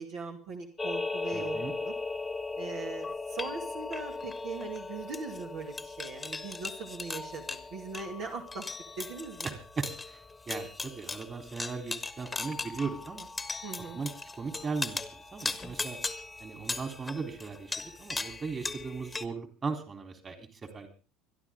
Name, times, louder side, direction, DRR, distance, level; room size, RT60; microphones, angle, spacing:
voice 1, 0.0-1.9 2.6-8.6 9.0-9.5 13.6-14.0, right 4 dB, 60° right, 1 dB, 2.4 m, -40 dB
sound 1, 0.8-19.2, left 3 dB, 15° left, 1.4 m, -38 dB
voice 2, 1.3-1.7 9.4-13.3 13.9-14.1 14.4-16.0 16.4-20.9, right 4 dB, 30° right, 6 dB, 3.6 m, -38 dB
25.5 x 11.5 x 3.7 m, 0.34 s
hypercardioid pair, 70°, 0 cm